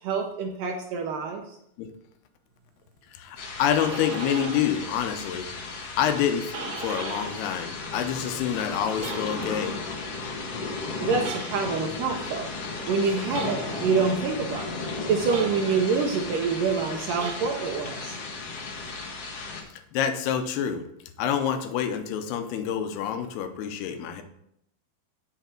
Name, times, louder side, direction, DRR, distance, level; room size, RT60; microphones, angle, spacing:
voice 1, 0.0-1.4 11.0-12.5 12.9-14.7 15.1-18.2, right 5 dB, 75° right, 2 dB, 2.0 m, -26 dB
voice 2, 3.1-5.5 6.0-9.8 19.7-20.9 21.2-24.2, left 9 dB, 90° left, 8 dB, 2.8 m, -27 dB
sound 1, 3.4-19.6, left 4 dB, 60° left, 1.7 m, -35 dB
sound 2, 3.4-4.8 5.1-7.5 7.8-9.7 11.2-11.9 13.3-14.0 15.3-16.0 17.1-17.9, right 5 dB, 55° right, 1.8 m, -39 dB
8.2 x 6.4 x 4.4 m, 0.76 s
omnidirectional pair, 4.5 m